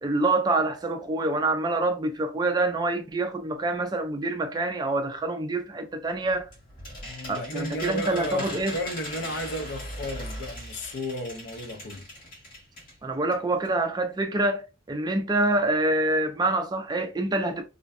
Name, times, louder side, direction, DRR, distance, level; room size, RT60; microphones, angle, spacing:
voice 1, 0.0-6.5 7.3-8.7 13.0-14.6 14.9-17.6, right 2 dB, 20° right, 0.3 m, -26 dB
sound 1, 6.1-13.0 13.3-13.4 13.6-13.7, equal, 45° left, 1.2 m, -40 dB
voice 2, 7.0-12.1, left 1 dB, 65° left, 0.5 m, -33 dB
2.5 x 2.1 x 2.4 m
head